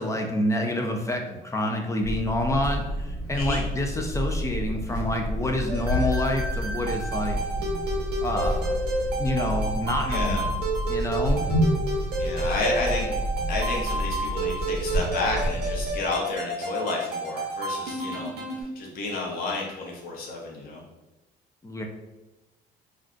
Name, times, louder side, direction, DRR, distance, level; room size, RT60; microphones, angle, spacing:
voice 1, 0.0-7.4 8.2-8.8 9.2-10.5 10.9-11.5 21.6-21.8, left 1 dB, 20° left, 3 dB, 0.4 m, -28 dB
sound 1, 2.0-16.0, equal, 90° left, 1.1 m, -29 dB
sound 2, 5.7-18.6, right 2 dB, 80° right, 0.7 m, -31 dB
voice 2, 10.1-10.4 12.2-13.2 13.5-20.8, left 3 dB, 60° left, -2 dB, 0.9 m, -31 dB
2.5 x 2.2 x 3.7 m, 1.1 s
cardioid pair, 110°, 17 cm